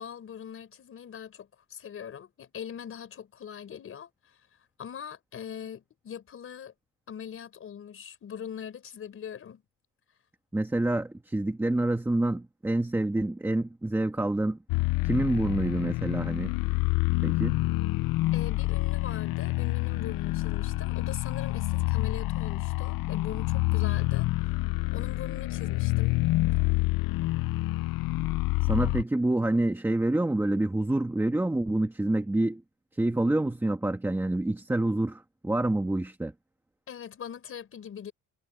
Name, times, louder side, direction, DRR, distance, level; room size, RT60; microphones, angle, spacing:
voice 1, 0.0-4.4 4.8-6.7 7.1-9.6 18.3-24.3 24.9-26.2 36.9-38.1, left 8 dB, 40° left, 4.7 m, -41 dB
voice 2, 10.5-14.6 15.0-16.5 17.2-17.6 28.7-32.6 33.0-36.3, right 2 dB, 5° right, 1.6 m, -27 dB
sound 1, 14.7-29.0, left 19 dB, 90° left, 0.6 m, -27 dB
cardioid pair, 175°, 33 cm